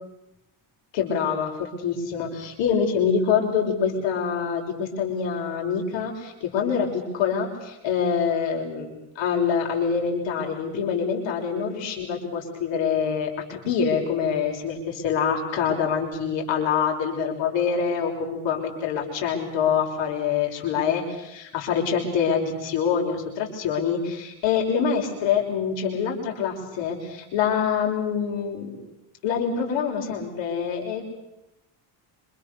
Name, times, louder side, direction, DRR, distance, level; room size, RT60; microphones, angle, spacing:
voice 1, 0.9-28.8 29.2-31.0, left 7 dB, 70° left, 1 dB, 6.0 m, -25 dB
27.5 x 26.5 x 6.9 m, 0.89 s
cardioid pair, 175°, 46 cm